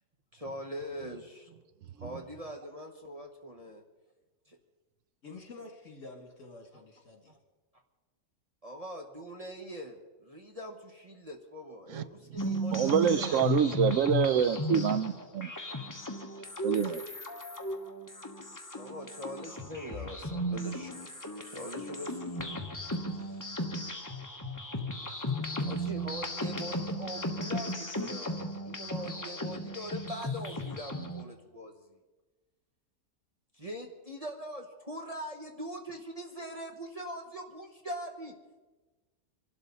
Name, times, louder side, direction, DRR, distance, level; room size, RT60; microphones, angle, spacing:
voice 1, 0.3-1.6 2.0-3.8 7.3-7.4 8.6-13.5 15.7-15.8 18.7-20.9 21.4-22.6 23.1-23.4 25.5-31.7 33.6-38.3, equal, 25° right, 1.3 m, -42 dB
voice 2, 5.2-7.3, left 3 dB, 55° left, 2.7 m, -48 dB
sound 1, 12.4-31.2, left 1 dB, 15° left, 1.1 m, -35 dB
voice 3, 12.5-15.5 16.6-17.0, right 8 dB, 65° right, 0.9 m, -27 dB
25.5 x 12.0 x 4.1 m
omnidirectional pair, 1.6 m